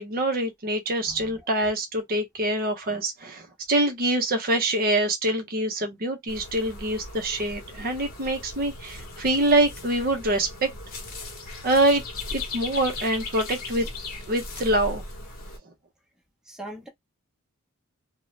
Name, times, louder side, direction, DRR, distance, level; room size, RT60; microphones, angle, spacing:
voice 1, 0.0-10.7 11.6-12.0 12.3-13.9 14.3-15.0, right 1 dB, 40° right, 0.6 m, -25 dB
sound 1, 6.3-15.6, left 3 dB, 40° left, 0.9 m, -38 dB
voice 2, 16.5-16.9, right 1 dB, ahead, 0.7 m, -40 dB
2.6 x 2.0 x 3.0 m
head